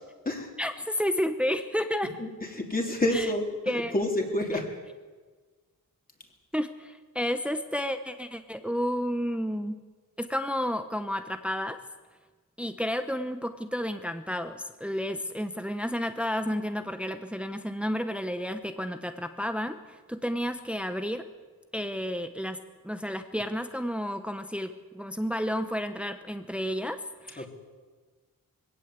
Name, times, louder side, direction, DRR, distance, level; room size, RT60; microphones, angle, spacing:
voice 1, 0.6-2.1 3.1-3.3 3.7-3.9 6.5-9.8 10.2-11.8 12.6-21.3 21.7-22.6 22.8-27.5, equal, 5° right, 8 dB, 1.0 m, -31 dB
voice 2, 2.2-3.5 3.9-4.7 27.4-27.5, left 1 dB, 25° left, 1 dB, 3.5 m, -28 dB
21.5 x 17.0 x 8.2 m, 1.4 s
wide cardioid pair, 130°, 35 cm